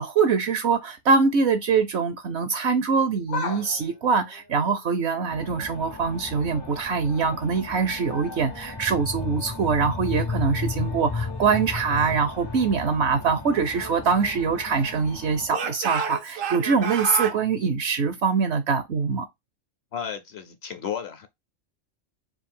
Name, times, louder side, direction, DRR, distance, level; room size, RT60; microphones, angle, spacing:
voice 1, 0.0-19.3, right 5 dB, 65° right, 0.9 m, -23 dB
sound 1, 3.1-5.9 6.3-6.7 7.0-11.0 11.3-11.4 12.4-12.5, left 5 dB, 90° left, 1.5 m, -41 dB
sound 2, 5.3-15.5, left 3 dB, 35° left, 0.4 m, -34 dB
Speech / Shout, 13.5-15.1 15.5-17.4, right 7 dB, 90° right, 1.2 m, -31 dB
voice 2, 19.9-21.3, left 8 dB, 60° left, 0.8 m, -33 dB
4.6 x 2.4 x 3.6 m
omnidirectional pair, 1.3 m